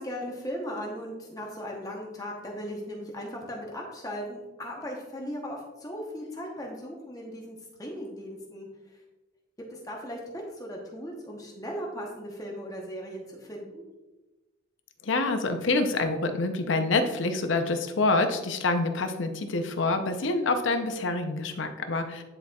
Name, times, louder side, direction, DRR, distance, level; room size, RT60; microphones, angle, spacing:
voice 1, 0.0-8.7 9.7-13.8, equal, 15° left, -1 dB, 0.8 m, -37 dB
voice 2, 15.0-22.2, left 3 dB, 70° left, 7 dB, 0.6 m, -26 dB
9.9 x 4.2 x 2.3 m, 1.1 s
head